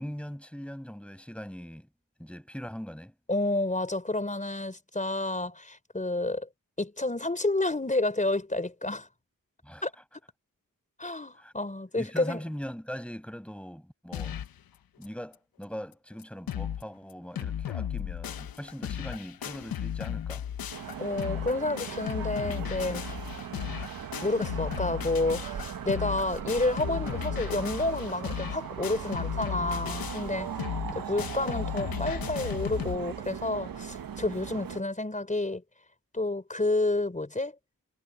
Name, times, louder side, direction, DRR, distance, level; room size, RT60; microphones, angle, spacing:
voice 1, 0.0-1.9 2.2-3.1 9.6-9.9 11.4-11.5 12.0-14.4 15.0-20.5 30.9-31.0, equal, 5° left, 7.2 m, -40 dB
voice 2, 3.3-6.5 6.8-9.1 9.8-9.9 11.0-12.4 21.0-23.0 24.2-30.5 30.9-35.6 36.1-37.5, left 2 dB, 20° left, 4.8 m, -30 dB
sound 1, 14.1-14.6 15.0-15.1 15.3-15.4 15.9-16.0 16.2-16.8 17.1-33.0, left 9 dB, 85° left, 1.2 m, -35 dB
sound 2, 20.7-34.8, right 8 dB, 75° right, 1.6 m, -39 dB
cardioid pair, 55°, 35 cm